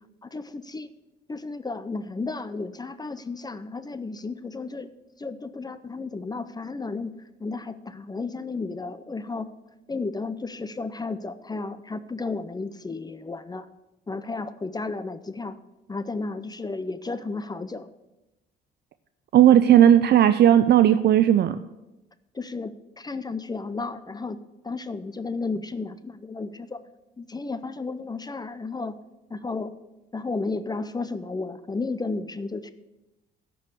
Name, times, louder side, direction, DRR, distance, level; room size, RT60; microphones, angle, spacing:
voice 1, 0.2-0.9 1.3-4.9 5.2-7.1 7.4-9.5 9.9-13.7 14.1-15.6 15.9-17.9 22.3-24.4 24.6-26.8 27.2-29.0 29.3-29.7 30.1-32.7, left 3 dB, 20° left, 13 dB, 0.5 m, -33 dB
voice 2, 19.3-21.6, right 10 dB, 55° right, 12 dB, 0.4 m, -16 dB
11.5 x 4.6 x 8.2 m, 1.0 s
cardioid pair, 90°, 20 cm